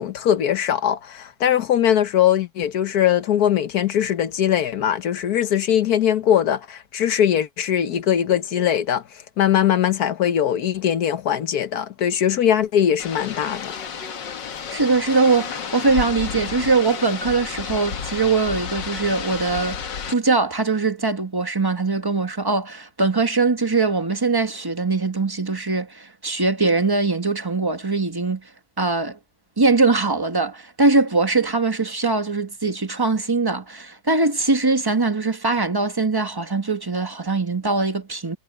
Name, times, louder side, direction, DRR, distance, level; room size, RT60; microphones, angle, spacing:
voice 1, 0.0-9.0 9.4-13.7, left 10 dB, 65° left, 1.4 m, -21 dB
sound 1, 13.0-20.1, left 6 dB, 90° left, 2.1 m, -31 dB
voice 2, 14.7-28.5 28.8-29.2 29.6-38.4, right 3 dB, 15° right, 1.1 m, -21 dB
omnidirectional pair, 1.9 m